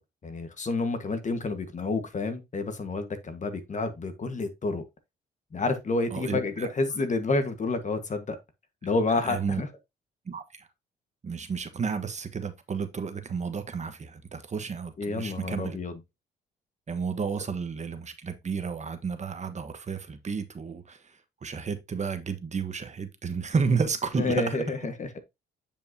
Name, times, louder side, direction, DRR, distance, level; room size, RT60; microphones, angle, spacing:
voice 1, 0.2-4.8 5.5-8.4 8.8-9.7 15.0-15.9 24.2-25.2, left 3 dB, 40° left, 1.5 m, -29 dB
voice 2, 6.1-7.0 9.1-9.6 10.3-10.7 11.2-15.8 16.9-24.6, right 5 dB, 35° right, 1.2 m, -32 dB
8.9 x 5.2 x 2.8 m
cardioid pair, 90°, 20 cm